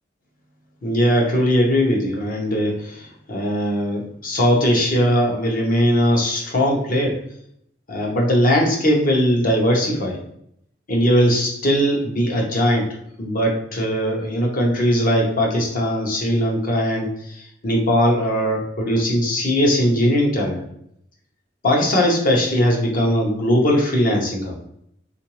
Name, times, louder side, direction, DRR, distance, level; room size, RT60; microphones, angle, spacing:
voice 1, 0.8-7.1 7.9-10.2 10.9-12.9 13.2-20.6 21.6-24.5, equal, 45° left, -1 dB, 0.8 m, -19 dB
3.8 x 2.5 x 2.9 m, 0.72 s
head